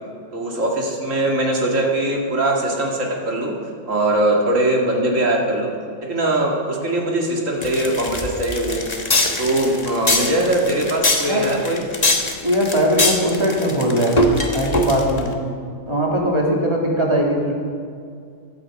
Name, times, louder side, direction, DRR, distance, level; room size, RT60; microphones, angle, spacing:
voice 1, 0.3-3.5 3.9-5.7 6.0-8.9 9.4-11.8, right 1 dB, 75° right, 0 dB, 2.5 m, -21 dB
sound 1, 7.6-15.3, left 2 dB, 30° left, 1.3 m, -22 dB
voice 2, 12.4-14.3 14.5-15.3 15.9-17.5, equal, 20° right, -2 dB, 2.6 m, -20 dB
15.5 x 12.0 x 5.3 m, 2.3 s
omnidirectional pair, 1.3 m